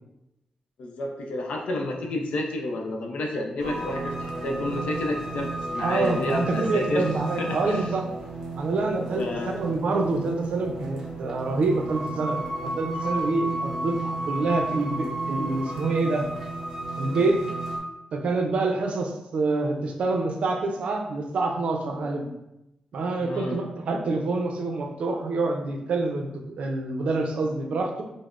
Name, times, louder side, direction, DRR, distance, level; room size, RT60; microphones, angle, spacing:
voice 1, 0.8-7.1 7.4-7.9 9.2-9.6 23.2-23.6, left 2 dB, 80° left, 1 dB, 0.5 m, -30 dB
sound 1, 3.6-17.8, right 2 dB, 25° right, 0.8 m, -33 dB
voice 2, 5.8-8.0 8.6-16.2 17.0-17.4 18.1-22.2 22.9-28.0, right 3 dB, 65° right, 3 dB, 0.5 m, -27 dB
5.1 x 2.0 x 2.4 m, 0.90 s
wide cardioid pair, 145°, 2 cm